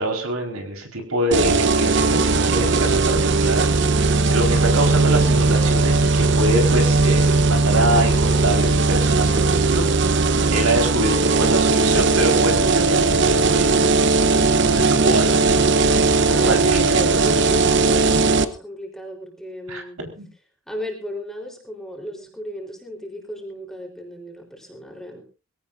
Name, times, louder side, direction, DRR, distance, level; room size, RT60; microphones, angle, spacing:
voice 1, 0.0-9.9 10.5-13.7 14.5-15.4 16.2-17.0 19.7-20.3, right 1 dB, 80° right, 3 dB, 4.4 m, -25 dB
sound 1, 1.3-18.4, right 3 dB, 55° right, 0.9 m, -18 dB
voice 2, 14.8-15.2 16.3-20.0 20.7-25.2, left 1 dB, ahead, 1 dB, 3.8 m, -34 dB
22.5 x 17.0 x 2.6 m, 0.32 s
head